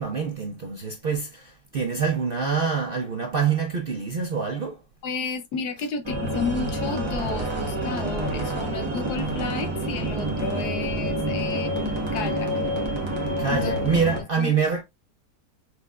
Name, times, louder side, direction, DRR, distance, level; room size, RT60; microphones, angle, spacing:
voice 1, 0.0-4.8 13.4-14.8, right 6 dB, 55° right, 0.6 m, -26 dB
voice 2, 5.0-12.5 13.5-14.6, left 5 dB, 75° left, 1.3 m, -32 dB
sound 1, 6.0-14.2, right 1 dB, 20° right, 1.1 m, -28 dB
5.9 x 3.3 x 2.3 m
omnidirectional pair, 1.8 m